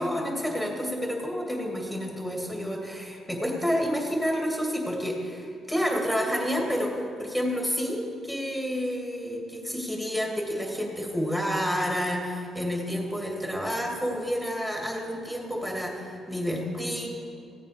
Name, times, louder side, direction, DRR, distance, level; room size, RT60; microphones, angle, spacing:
voice 1, 0.0-17.1, equal, 10° left, 0 dB, 2.6 m, -29 dB
15.5 x 8.8 x 5.1 m, 2.6 s
cardioid pair, 90°, 0 cm